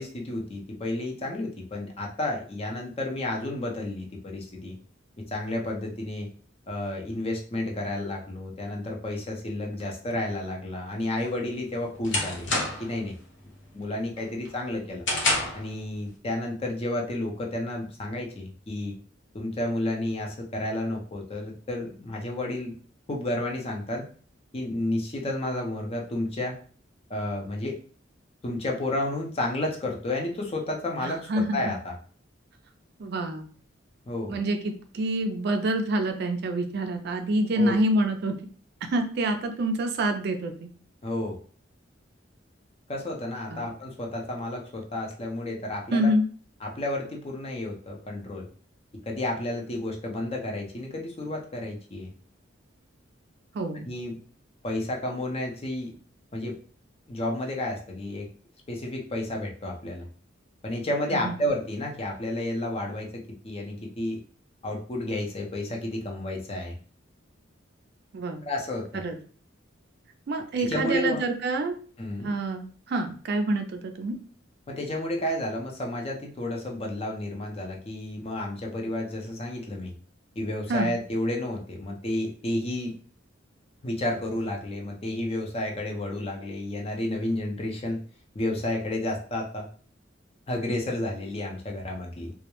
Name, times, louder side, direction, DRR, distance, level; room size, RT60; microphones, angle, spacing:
voice 1, 0.0-4.8 5.3-6.3 6.7-12.5 12.8-13.1 13.7-15.0 15.5-18.9 19.3-22.7 23.1-24.0 24.5-26.6 27.1-27.8 28.4-31.9 34.1-34.4 37.5-37.7 41.0-41.4 42.9-46.1 46.6-48.5 49.1-52.1 53.8-54.2 54.6-55.9 56.3-56.6 57.1-58.3 58.7-60.1 60.6-64.2 64.6-66.8 68.4-69.0 70.6-71.2 72.0-72.3 74.7-79.9 80.4-82.9 83.8-88.0 88.3-89.7 90.5-92.3, left 1 dB, 30° left, 1 dB, 0.5 m, -31 dB
sound 1, 11.2-13.0 13.4-13.8 14.2-15.7, left 2 dB, 70° left, 0.8 m, -28 dB
voice 2, 31.0-31.7 33.0-33.5 34.3-38.3 38.8-40.7 43.5-43.7 45.9-46.2 53.5-53.9 61.1-61.3 68.1-68.4 68.9-69.2 70.3-71.8 72.2-74.2 80.7-80.9, right 1 dB, 60° right, 6 dB, 0.4 m, -27 dB
2.2 x 2.0 x 2.9 m, 0.44 s
head